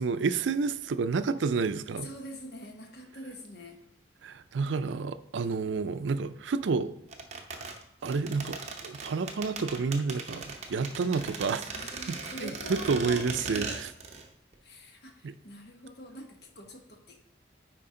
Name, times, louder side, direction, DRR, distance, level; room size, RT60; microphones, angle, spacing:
voice 1, 0.0-2.1 4.2-6.9 8.0-11.6 12.1-13.9 15.2-15.3, right 4 dB, 80° right, 0.4 m, -30 dB
voice 2, 1.9-3.8 11.7-13.8 14.6-17.2, left 1 dB, 55° left, 1.1 m, -44 dB
sound 1, 7.1-14.3 14.5-14.6, right 4 dB, 35° right, 0.8 m, -39 dB
9.8 x 4.5 x 3.8 m
head